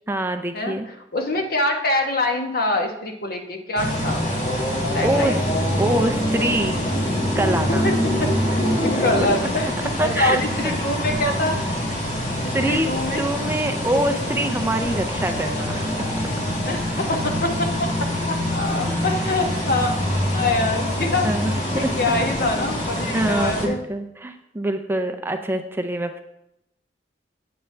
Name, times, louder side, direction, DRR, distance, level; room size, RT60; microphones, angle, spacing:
voice 1, 0.1-0.9 5.0-5.4 5.8-6.8 7.4-7.8 8.7-9.0 10.0-10.4 10.6-10.7 12.5-12.9 13.2-16.1 21.2-21.9 23.1-26.2, right 1 dB, 15° right, 7 dB, 0.5 m, -25 dB
voice 2, 1.1-4.2 4.9-5.4 7.8-8.3 8.8-11.6 12.4-13.2 16.7-17.9 18.2-19.9 20.3-21.3 21.7-23.8, left 2 dB, 60° left, 3 dB, 1.1 m, -25 dB
sound 1, 3.8-23.7, equal, 45° left, 1.8 m, -24 dB
8.0 x 7.9 x 3.3 m, 0.83 s
head